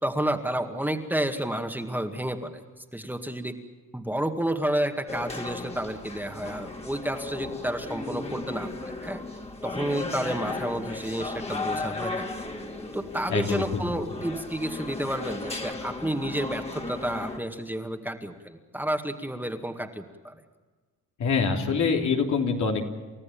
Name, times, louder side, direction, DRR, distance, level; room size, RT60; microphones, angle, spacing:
voice 1, 0.0-3.5 3.9-9.2 9.6-12.3 12.9-20.3, right 1 dB, 5° right, 5 dB, 2.1 m, -30 dB
sound 1, 5.1-17.4, left 3 dB, 20° left, 2.6 m, -35 dB
voice 2, 13.3-14.0 21.2-22.8, left 5 dB, 70° left, 2 dB, 3.3 m, -25 dB
30.0 x 14.0 x 8.7 m, 1.3 s
cardioid pair, 90°, 30 cm